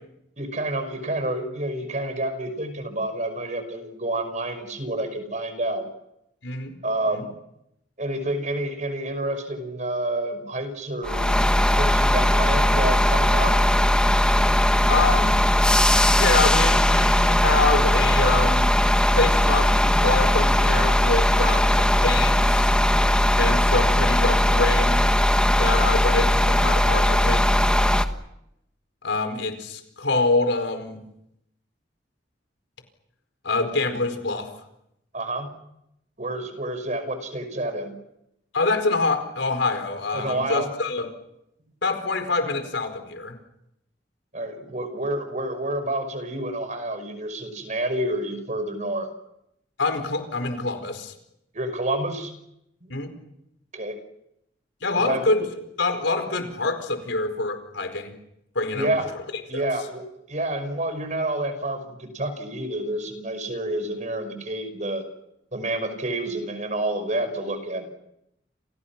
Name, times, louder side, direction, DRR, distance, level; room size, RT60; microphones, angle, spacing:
voice 1, 0.4-5.9 6.8-7.3 8.0-11.3 11.8-13.6 35.1-35.5 36.2-37.9 40.1-40.7 44.3-49.1 51.5-52.3 53.7-54.0 55.0-55.3 58.7-59.1 59.5-65.0 65.5-67.9, right 1 dB, 40° right, 9 dB, 5.6 m, -29 dB
sound 1, 11.0-28.1, left 1 dB, 5° left, 1.3 m, -19 dB
voice 2, 14.9-15.4 16.1-18.7 19.1-22.7 23.4-25.0 25.6-27.5 29.0-31.0 33.4-34.5 38.5-41.1 41.8-43.3 49.8-51.1 52.9-53.1 54.8-55.5 55.8-58.1 58.5-58.9 59.5-59.6, left 3 dB, 85° left, 7 dB, 4.7 m, -25 dB
29.5 x 29.0 x 6.0 m, 0.82 s
head